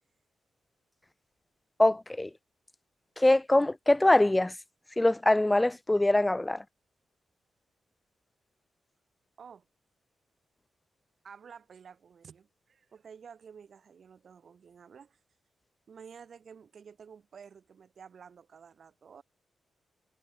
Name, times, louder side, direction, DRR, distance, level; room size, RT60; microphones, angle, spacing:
voice 1, 1.8-2.3 3.2-4.5 5.0-6.6, left 1 dB, 10° left, 0.4 m, -23 dB
voice 2, 11.2-15.2 15.9-19.2, right 6 dB, 45° right, 5.0 m, -51 dB
wide cardioid pair, 155°, 0 cm